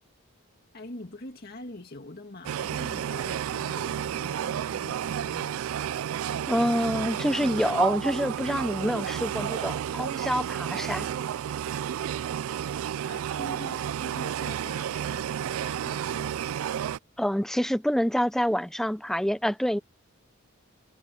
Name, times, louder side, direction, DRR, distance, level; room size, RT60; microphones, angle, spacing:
voice 1, 0.7-5.6 13.0-16.4, left 1 dB, 50° left, 2.1 m, -44 dB
sound 1, 2.4-17.0, right 9 dB, 85° right, 0.3 m, -31 dB
voice 2, 6.5-11.1 17.2-19.8, equal, ahead, 0.5 m, -27 dB
head